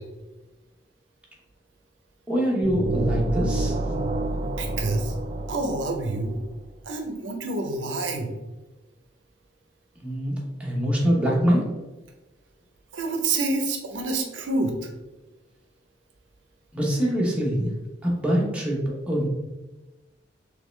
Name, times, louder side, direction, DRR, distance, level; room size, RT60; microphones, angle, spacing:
voice 1, 2.3-3.7 10.0-11.6 16.7-17.7 18.0-18.8 19.1-19.3, equal, 5° right, -4 dB, 0.9 m, -24 dB
sound 1, 2.6-6.4, right 2 dB, 35° right, 0.3 m, -28 dB
voice 2, 4.6-5.1 5.5-6.4 6.8-8.3 12.9-14.9, right 2 dB, 80° right, 4 dB, 0.6 m, -27 dB
3.7 x 3.2 x 3.1 m, 1.1 s
head